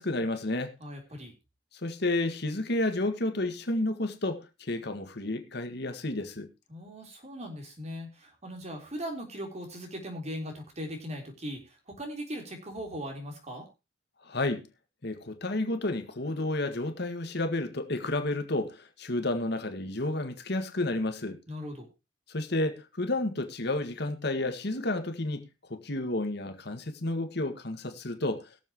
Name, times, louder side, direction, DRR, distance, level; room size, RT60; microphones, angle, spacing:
voice 1, 0.0-0.7 1.8-6.5 14.2-14.6 15.0-21.4 22.3-28.5, left 2 dB, 60° left, 1.8 m, -31 dB
voice 2, 0.8-1.3 6.7-13.7 21.5-21.9, equal, 35° right, 3.8 m, -39 dB
21.5 x 7.6 x 3.0 m
head